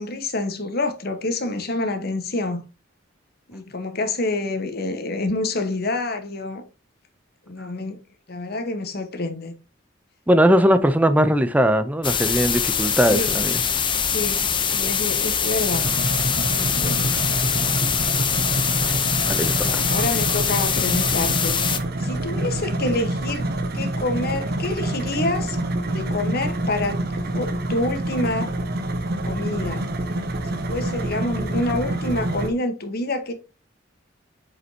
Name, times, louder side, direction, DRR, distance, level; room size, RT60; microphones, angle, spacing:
voice 1, 0.0-2.6 3.5-6.6 7.5-8.0 8.3-9.5 10.8-10.9 13.1-13.3 14.0-15.9 16.6-17.2 19.6-21.6 22.0-23.5 23.7-25.6 25.9-27.0 27.3-28.5 29.2-29.9 30.7-33.3, left 2 dB, 55° left, 1.3 m, -27 dB
voice 2, 10.3-13.6 19.1-19.8, equal, 10° right, 0.6 m, -19 dB
sound 1, 12.0-21.8, left 7 dB, 25° left, 0.7 m, -23 dB
sound 2, 15.7-32.5, right 1 dB, 55° right, 1.1 m, -27 dB
7.8 x 5.1 x 2.8 m
head